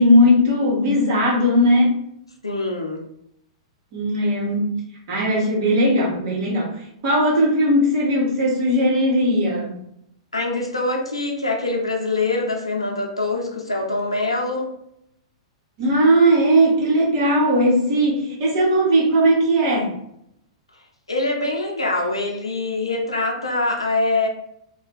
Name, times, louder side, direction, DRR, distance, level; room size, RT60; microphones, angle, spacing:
voice 1, 0.0-2.0 3.9-4.8 5.1-9.8 15.8-19.9, equal, 45° right, -4 dB, 1.2 m, -18 dB
voice 2, 2.4-3.0 10.3-14.7 21.1-24.3, left 2 dB, 80° left, 1 dB, 0.6 m, -24 dB
2.6 x 2.3 x 3.4 m, 0.75 s
figure-of-eight pair, 100°, 3 cm